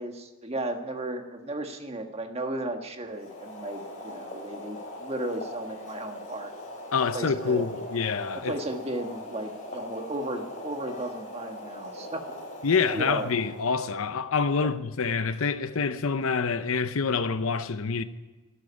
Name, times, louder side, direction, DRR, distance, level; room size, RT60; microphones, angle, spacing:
voice 1, 0.0-6.5 7.1-7.7 8.5-12.2 12.9-13.3 14.6-14.7, right 1 dB, 30° right, 1.5 m, -35 dB
Boiling, 3.1-14.1, left 1 dB, 35° left, 4.3 m, -41 dB
voice 2, 6.9-8.5 12.6-18.0, left 5 dB, 70° left, 0.7 m, -26 dB
12.5 x 11.5 x 8.5 m
head